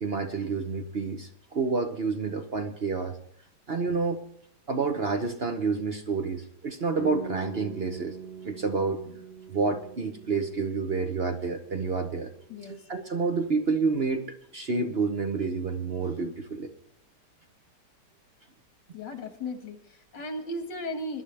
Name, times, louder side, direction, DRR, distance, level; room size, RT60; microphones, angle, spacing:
voice 1, 0.0-3.2 3.7-4.2 4.7-8.2 8.4-9.0 9.5-12.3 12.6-16.7, right 4 dB, 45° right, 6 dB, 0.9 m, -29 dB
sound 1, 7.0-12.7, right 4 dB, 70° right, 2.0 m, -43 dB
voice 2, 12.5-12.9 18.9-21.2, left 1 dB, 90° left, 6 dB, 2.4 m, -36 dB
20.5 x 11.5 x 3.4 m, 0.68 s
omnidirectional pair, 1.8 m